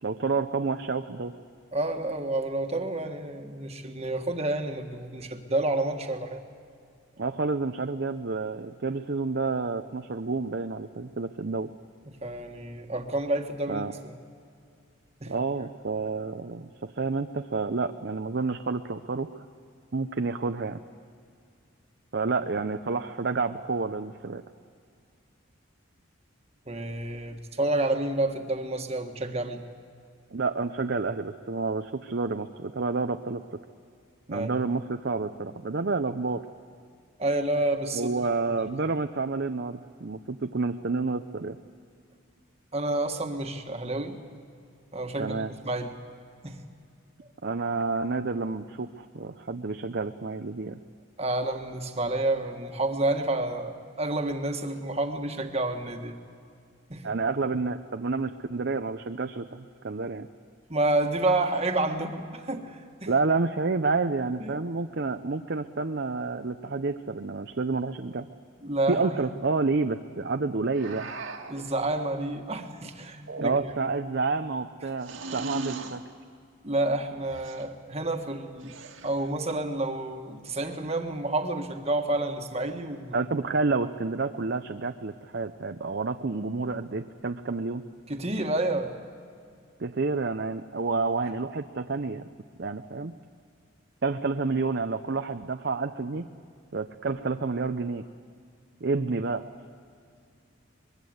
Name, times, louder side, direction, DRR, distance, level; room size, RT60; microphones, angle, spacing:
voice 1, 0.0-1.3 7.2-11.7 13.7-13.9 15.3-19.4 19.9-20.8 22.1-24.4 30.3-33.4 34.3-36.4 37.9-41.6 45.2-45.5 47.4-50.8 57.0-60.3 63.1-68.3 68.9-71.1 73.4-76.0 83.1-87.8 89.8-92.3 92.6-93.1 94.0-96.3 96.7-98.0 98.8-99.4, right 3 dB, 55° right, 7 dB, 0.6 m, -29 dB
voice 2, 1.7-6.4 12.2-14.2 15.2-15.3 26.7-29.6 34.3-34.5 37.2-38.1 42.7-44.2 44.9-46.0 46.4-46.6 51.2-56.1 56.9-57.0 60.7-63.1 64.4-64.6 68.6-69.2 71.5-73.5 73.8-73.9 76.6-78.8 79.0-83.2 88.1-89.0, right 2 dB, 30° right, 5 dB, 1.6 m, -29 dB
sound 1, 70.7-71.6 73.1-73.9 75.0-76.0 77.3-77.7 78.6-79.3, right 3 dB, 70° right, 1.9 m, -38 dB
24.0 x 22.0 x 7.9 m, 2.3 s
head